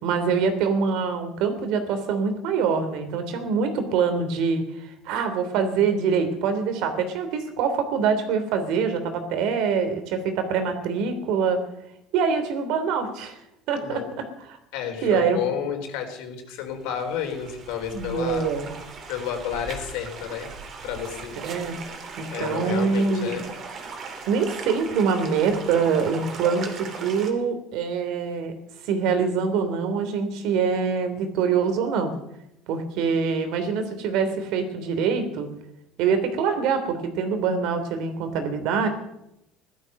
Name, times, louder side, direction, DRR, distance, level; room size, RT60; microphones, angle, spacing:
voice 1, 0.0-11.6 12.1-13.4 13.7-14.6 15.0-15.4 17.9-18.7 21.4-21.8 22.2-23.4 24.3-28.5 28.8-32.1 32.7-35.5 36.0-38.9, right 5 dB, 70° right, 8 dB, 3.1 m, -24 dB
voice 2, 13.8-14.1 14.7-18.5 19.1-20.5 20.8-21.4 22.3-23.5 33.0-33.2, left 9 dB, 80° left, 4 dB, 4.0 m, -31 dB
sound 1, 16.7-27.3, right 4 dB, 40° right, 3.1 m, -38 dB
16.0 x 12.5 x 6.5 m, 0.83 s
cardioid pair, 135°, 0 cm